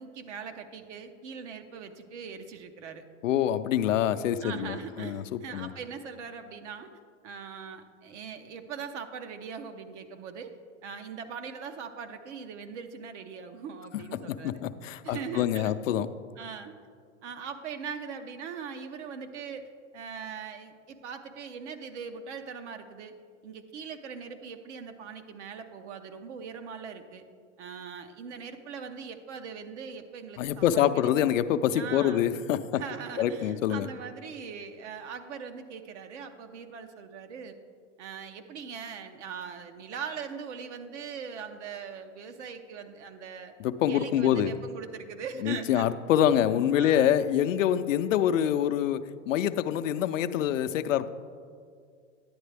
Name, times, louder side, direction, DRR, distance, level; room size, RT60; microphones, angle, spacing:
voice 1, 0.0-3.0 4.4-6.9 7.2-10.5 10.8-14.6 15.0-15.7 16.4-16.7 17.2-23.2 23.4-27.2 27.6-31.3 31.7-32.3 32.7-37.6 38.0-43.5 43.9-45.9 46.7-47.3, right 6 dB, 65° right, 7 dB, 0.8 m, -41 dB
voice 2, 3.2-5.7 14.1-16.1 30.4-32.8 33.2-33.9 43.6-44.6 45.4-51.1, left 10 dB, 80° left, 11 dB, 0.5 m, -26 dB
10.5 x 9.2 x 3.3 m, 2.1 s
hypercardioid pair, 120°, 38 cm